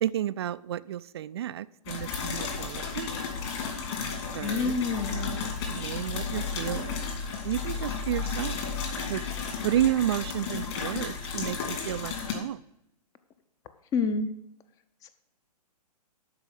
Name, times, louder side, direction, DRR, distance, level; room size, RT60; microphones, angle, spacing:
voice 1, 0.0-3.1 4.3-4.7 5.1-7.0 7.4-8.6 9.1-9.2 9.6-12.6, right 11 dB, 40° right, 17 dB, 0.4 m, -31 dB
sound 1, 1.8-12.3, left 5 dB, 40° left, 2.4 m, -33 dB
voice 2, 4.4-5.3 13.9-14.3 15.0-15.1, left 4 dB, 15° left, 12 dB, 0.6 m, -28 dB
12.0 x 4.8 x 7.9 m, 0.83 s
figure-of-eight pair, 120°, 21 cm